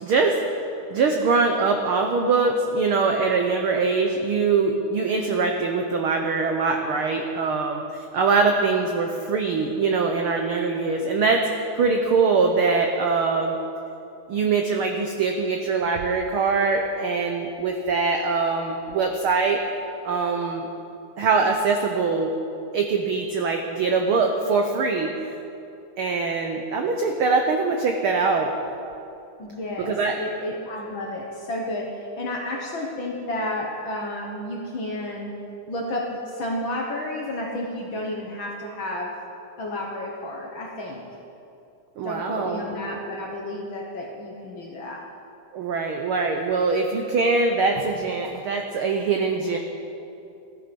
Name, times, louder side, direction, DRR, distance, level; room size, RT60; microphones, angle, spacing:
voice 1, 0.0-0.4 0.9-13.5 14.3-19.6 20.0-20.7 21.2-22.3 22.7-25.3 26.0-28.5 29.8-30.2 42.0-42.6 45.5-49.6, right 4 dB, 85° right, 3 dB, 1.2 m, -23 dB
voice 2, 29.4-35.4 35.7-39.2 39.6-41.0 42.0-45.0, left 1 dB, 55° left, 0 dB, 1.5 m, -31 dB
14.5 x 13.0 x 5.3 m, 2.8 s
omnidirectional pair, 3.5 m